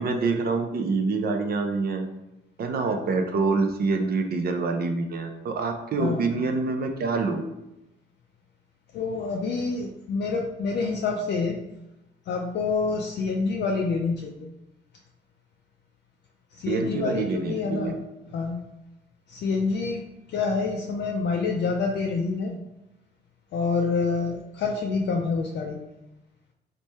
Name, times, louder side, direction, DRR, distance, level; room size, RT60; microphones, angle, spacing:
voice 1, 0.0-2.0 2.6-7.4 16.7-18.0, right 4 dB, 50° right, 5 dB, 0.5 m, -26 dB
voice 2, 6.0-6.3 8.9-11.6 12.3-14.5 16.5-18.0 18.3-18.6 19.3-20.0 20.3-22.5 23.5-25.9, left 4 dB, 60° left, 1 dB, 0.4 m, -27 dB
3.2 x 2.2 x 4.1 m, 0.92 s
cardioid pair, 90°, 20 cm